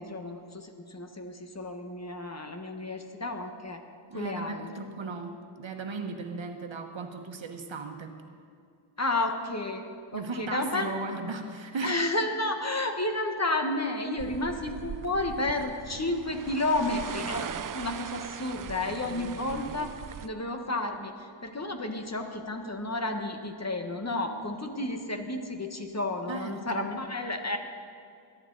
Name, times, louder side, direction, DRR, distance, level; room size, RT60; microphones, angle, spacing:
voice 1, 0.0-3.8 4.1-4.7 9.0-9.8 10.1-10.9 11.8-20.0 20.2-27.6, left 2 dB, 30° left, 4 dB, 1.4 m, -31 dB
voice 2, 4.1-8.2 10.1-12.0 18.8-19.6 26.3-26.9, right 3 dB, 65° right, 5 dB, 1.3 m, -37 dB
sound 1, 14.2-20.3, right 9 dB, 45° right, 0.4 m, -40 dB
22.0 x 11.0 x 4.0 m, 2.4 s
wide cardioid pair, 70°, 49 cm